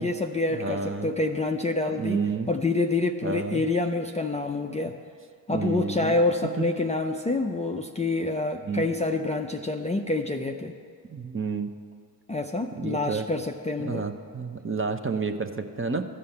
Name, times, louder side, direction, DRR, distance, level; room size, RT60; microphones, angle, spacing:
voice 1, 0.0-4.9 5.5-10.7 12.3-14.1, left 2 dB, 15° left, 3 dB, 0.5 m, -27 dB
voice 2, 0.5-1.1 2.0-2.5 3.2-3.6 5.5-6.1 8.7-8.8 11.1-11.7 12.7-13.2 13.8-16.0, right 4 dB, 25° right, 7 dB, 0.8 m, -30 dB
13.0 x 5.5 x 7.7 m, 2.2 s
supercardioid pair, 55°, 49 cm